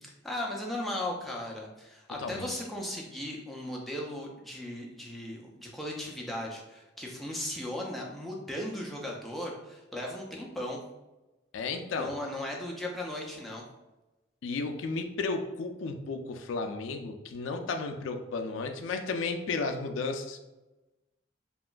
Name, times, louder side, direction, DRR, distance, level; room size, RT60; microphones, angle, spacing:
voice 1, 0.0-10.8 12.0-13.7, left 1 dB, ahead, -2 dB, 0.4 m, -37 dB
voice 2, 2.2-2.6 11.5-12.1 14.4-20.4, left 3 dB, 80° left, 5 dB, 0.3 m, -33 dB
2.9 x 2.4 x 2.2 m, 1.1 s
head